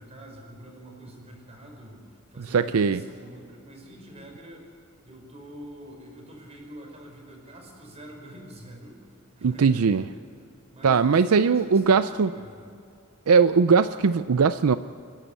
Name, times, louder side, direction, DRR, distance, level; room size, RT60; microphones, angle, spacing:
voice 1, 0.0-4.7 5.0-10.1 10.7-12.8, equal, 30° right, 1 dB, 5.1 m, -45 dB
voice 2, 2.5-3.0 9.4-10.0 10.8-12.3 13.3-14.8, right 5 dB, 75° right, 12 dB, 0.5 m, -20 dB
27.0 x 11.5 x 8.4 m, 2.3 s
head